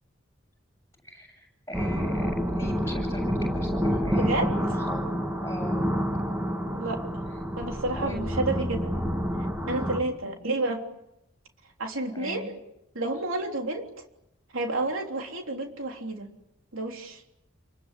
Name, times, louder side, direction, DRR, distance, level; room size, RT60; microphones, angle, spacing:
voice 1, 1.0-5.1 5.4-5.8 7.9-8.2 12.1-12.5, left 1 dB, 15° left, 4 dB, 7.8 m, -38 dB
sound 1, 1.7-10.0, equal, 10° right, 2.0 m, -28 dB
voice 2, 4.1-4.6 6.7-7.0 7.6-8.9 9.4-10.9 11.8-12.5 13.0-13.9 14.5-16.3 16.7-17.2, right 2 dB, 85° right, 2 dB, 3.5 m, -30 dB
29.5 x 21.0 x 8.3 m, 0.84 s
head